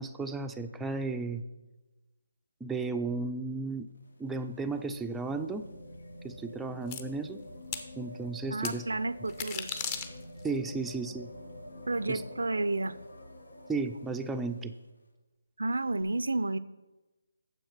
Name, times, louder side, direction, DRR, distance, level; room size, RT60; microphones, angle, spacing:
voice 1, 0.0-1.4 2.6-3.9 4.2-5.6 6.2-7.4 8.0-8.8 10.4-11.3 12.1-12.2 13.7-14.7, right 3 dB, 5° right, 4 dB, 0.4 m, -34 dB
sound 1, 3.8-14.8 16.0-16.1, left 1 dB, 90° left, 1.3 m, -48 dB
sound 2, 6.9-7.0 7.7-7.9 8.6-8.8 9.3-10.5, left 6 dB, 25° left, 0.7 m, -36 dB
voice 2, 8.5-9.8 11.9-13.0 15.6-16.6, right 2 dB, 85° right, 15 dB, 0.5 m, -31 dB
9.0 x 7.1 x 5.7 m, 1.1 s
figure-of-eight pair, 155°, 0 cm